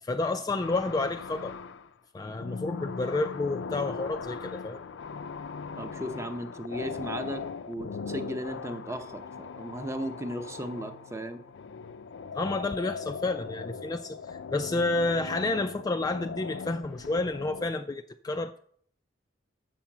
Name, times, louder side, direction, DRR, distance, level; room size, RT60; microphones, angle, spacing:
voice 1, 0.0-1.6 2.1-4.8 12.3-18.6, left 2 dB, 20° left, 0.3 m, -30 dB
sound 1, 0.6-1.9 2.2-17.7, left 5 dB, 90° left, 0.5 m, -40 dB
voice 2, 5.8-7.4 7.7-11.4, equal, 15° right, 0.7 m, -36 dB
7.3 x 5.7 x 7.2 m
head